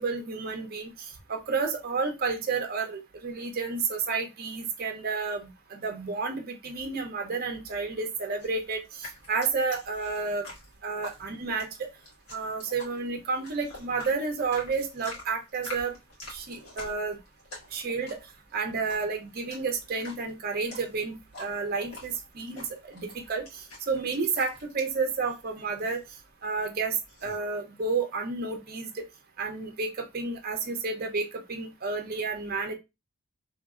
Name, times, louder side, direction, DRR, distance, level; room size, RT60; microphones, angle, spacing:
voice 1, 0.0-10.5 10.8-11.9 12.3-15.9 16.3-17.2 17.7-18.2 18.5-26.0 26.4-27.0 27.2-29.0 29.4-32.7, right 4 dB, 45° right, 4 dB, 0.6 m, -31 dB
sound 1, 8.4-27.4, left 2 dB, 75° left, 1.7 m, -47 dB
3.0 x 2.6 x 2.3 m, 0.23 s
head